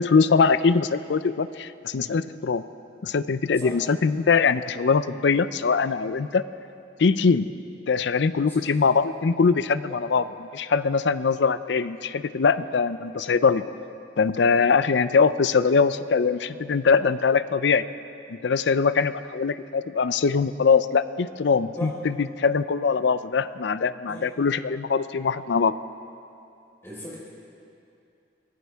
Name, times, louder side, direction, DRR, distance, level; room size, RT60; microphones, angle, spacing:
voice 1, 0.0-2.6 3.0-6.4 7.0-7.5 7.9-10.2 10.5-13.6 14.2-17.8 18.3-25.8, left 5 dB, 70° left, 14 dB, 0.5 m, -22 dB
voice 2, 26.8-27.2, left 1 dB, 15° left, -6 dB, 4.6 m, -37 dB
24.0 x 16.5 x 3.5 m, 2.6 s
head